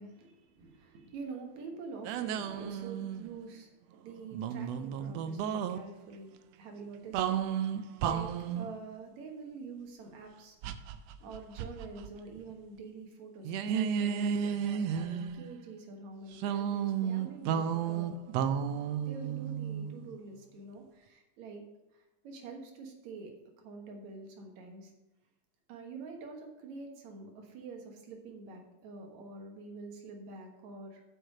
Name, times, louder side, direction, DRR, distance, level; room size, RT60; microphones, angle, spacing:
voice 1, 0.0-6.3 6.6-7.4 7.7-10.6 11.2-18.2 19.1-21.6 21.9-24.9 25.7-31.0, right 4 dB, 65° right, 2 dB, 2.5 m, -46 dB
sound 1, 2.0-3.4 4.3-5.8 7.1-8.7 10.6-12.1 12.4-12.5 13.4-15.6 16.4-20.1, right 8 dB, 90° right, 1.4 m, -33 dB
7.8 x 6.6 x 5.4 m, 0.98 s
omnidirectional pair, 3.6 m